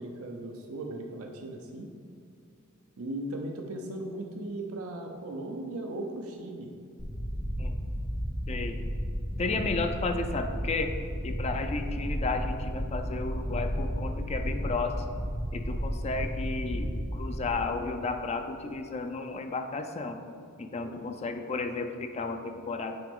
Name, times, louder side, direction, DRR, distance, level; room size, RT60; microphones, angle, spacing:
voice 1, 0.0-1.9 3.0-6.7 9.4-9.6 20.8-21.0, right 1 dB, 75° right, 2 dB, 0.6 m, -37 dB
sound 1, 7.0-17.5, equal, 85° left, 1.4 m, -33 dB
voice 2, 8.5-8.8 9.4-11.0 11.2-15.2 15.5-20.2 20.6-22.9, left 3 dB, 30° left, 6 dB, 0.4 m, -33 dB
7.9 x 5.1 x 3.6 m, 2.4 s
head